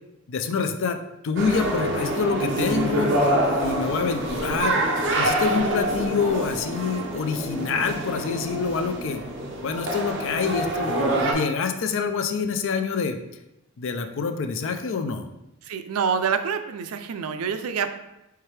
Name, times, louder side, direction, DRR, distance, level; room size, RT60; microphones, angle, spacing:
voice 1, 0.3-1.0 1.2-3.1 3.6-4.8 5.2-9.2 9.6-13.2 13.8-15.3, left 5 dB, 65° left, 7 dB, 0.4 m, -26 dB
sound 1, 1.4-11.3, right 1 dB, 60° right, 0.8 m, -26 dB
voice 2, 15.6-18.0, right 6 dB, 90° right, 9 dB, 0.4 m, -27 dB
4.6 x 3.4 x 3.2 m, 0.90 s
head